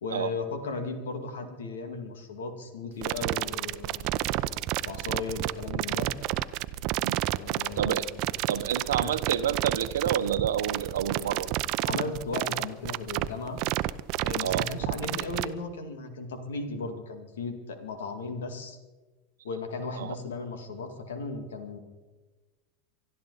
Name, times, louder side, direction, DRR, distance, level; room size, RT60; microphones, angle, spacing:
voice 1, 0.0-4.5 4.8-6.1 7.4-8.6 9.0-9.2 11.9-13.6 14.2-18.8 19.4-21.8, left 3 dB, 85° left, 7 dB, 2.2 m, -36 dB
sound 1, 3.0-15.4, right 16 dB, 55° right, 0.6 m, -30 dB
voice 2, 8.5-11.5 14.4-14.7 20.0-20.2, right 9 dB, 85° right, 11 dB, 0.9 m, -29 dB
24.5 x 12.5 x 4.1 m, 1.2 s
hypercardioid pair, 100°, 0 cm